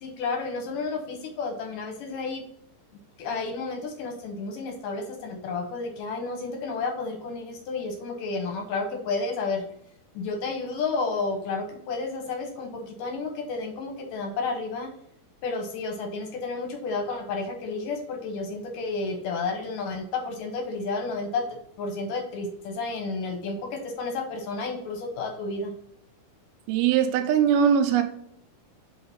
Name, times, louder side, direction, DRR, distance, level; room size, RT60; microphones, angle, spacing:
voice 1, 0.0-2.4 3.2-9.6 10.1-14.9 15.4-21.4 21.8-25.7, left 3 dB, 70° left, 2.3 m, -31 dB
voice 2, 26.7-28.0, right 8 dB, 85° right, 2.5 m, -21 dB
5.3 x 3.9 x 5.5 m
omnidirectional pair, 4.4 m